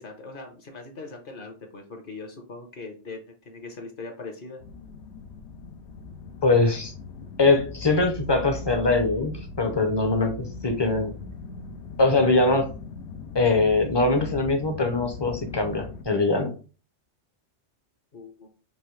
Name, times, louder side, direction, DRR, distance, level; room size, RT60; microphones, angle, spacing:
voice 1, 0.0-4.6 18.1-18.5, left 3 dB, 50° left, 3 dB, 1.0 m, -40 dB
sound 1, 4.6-16.0, left 4 dB, 75° left, 0.9 m, -39 dB
voice 2, 6.4-6.9 7.4-11.1 12.0-12.7 13.3-16.5, left 3 dB, 25° left, 5 dB, 0.6 m, -22 dB
5.4 x 2.6 x 3.1 m, 0.36 s
omnidirectional pair, 1.2 m